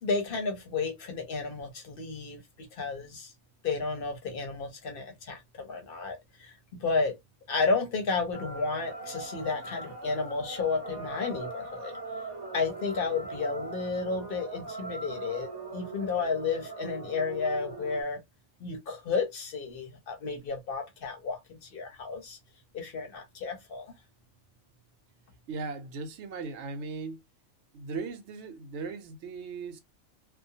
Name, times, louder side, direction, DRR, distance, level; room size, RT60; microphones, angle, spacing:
voice 1, 0.0-3.3 3.6-7.2 7.5-11.9 12.5-18.2 18.6-22.4 22.7-23.9, left 4 dB, 55° left, 0.8 m, -32 dB
sound 1, 8.3-18.0, right 3 dB, 25° right, 0.6 m, -40 dB
voice 2, 25.5-27.2 27.7-29.8, right 4 dB, 70° right, 0.8 m, -38 dB
2.3 x 2.1 x 2.7 m
omnidirectional pair, 1.2 m